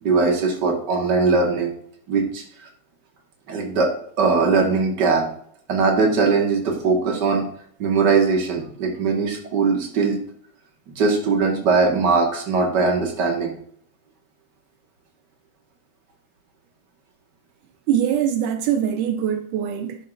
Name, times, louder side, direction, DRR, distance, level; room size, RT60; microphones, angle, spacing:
voice 1, 0.0-1.7 2.1-2.4 3.5-5.3 5.7-7.4 7.8-10.2 11.0-13.5, right 4 dB, 40° right, 2.1 m, -20 dB
voice 2, 17.9-20.0, right 9 dB, 80° right, 2.1 m, -22 dB
11.0 x 7.7 x 2.7 m
omnidirectional pair, 3.6 m